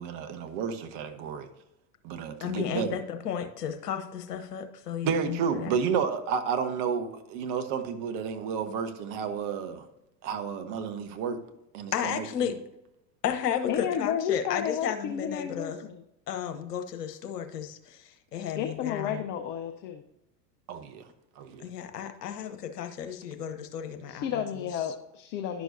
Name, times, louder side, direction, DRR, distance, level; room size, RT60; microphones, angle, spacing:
voice 1, 0.0-1.5 2.0-3.0 5.0-9.9 10.2-11.4 11.7-12.5 20.7-21.1 21.4-21.7, right 6 dB, 45° right, 7 dB, 1.0 m, -31 dB
voice 2, 2.4-6.0 11.9-12.5 13.2-15.8 16.3-19.2 21.6-24.6, left 8 dB, 70° left, 7 dB, 1.0 m, -33 dB
voice 3, 13.7-16.0 18.6-20.0 24.1-25.6, left 8 dB, 25° left, 7 dB, 0.3 m, -32 dB
11.0 x 6.1 x 2.7 m, 0.90 s
figure-of-eight pair, 85°, 49 cm